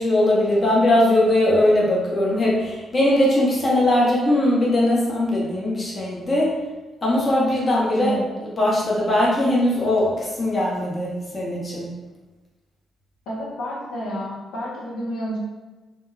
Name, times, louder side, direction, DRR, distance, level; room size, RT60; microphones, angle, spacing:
voice 1, 0.0-6.5 7.0-8.2 8.6-11.9, left 1 dB, 35° left, -5 dB, 0.9 m, -20 dB
voice 2, 7.9-8.4 13.3-15.4, equal, 70° left, -4 dB, 0.7 m, -30 dB
3.3 x 2.1 x 2.7 m, 1.2 s
hypercardioid pair, 40°, 0 cm